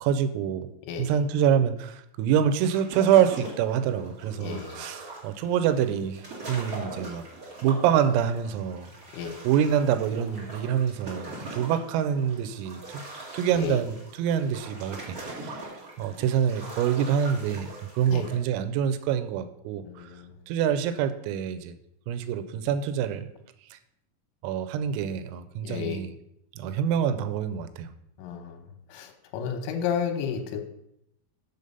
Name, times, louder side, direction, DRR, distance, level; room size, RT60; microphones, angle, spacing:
voice 1, 0.0-0.7 1.0-6.2 6.5-7.2 7.6-8.9 9.4-13.0 13.3-15.7 16.0-17.7 18.0-20.1 20.5-21.8 22.1-23.3 23.7-23.8 24.4-26.1 26.6-27.9, right 8 dB, 85° right, 10 dB, 3.3 m, -26 dB
voice 2, 0.9-1.2 4.4-4.8 9.1-9.4 13.5-13.8 18.1-18.3 19.8-20.4 25.6-26.0 28.2-28.6 28.9-30.6, left 7 dB, 75° left, 6 dB, 3.3 m, -32 dB
sound 1, 2.6-18.4, right 2 dB, 65° right, 0.9 m, -42 dB
7.2 x 6.6 x 5.3 m, 0.78 s
omnidirectional pair, 6.0 m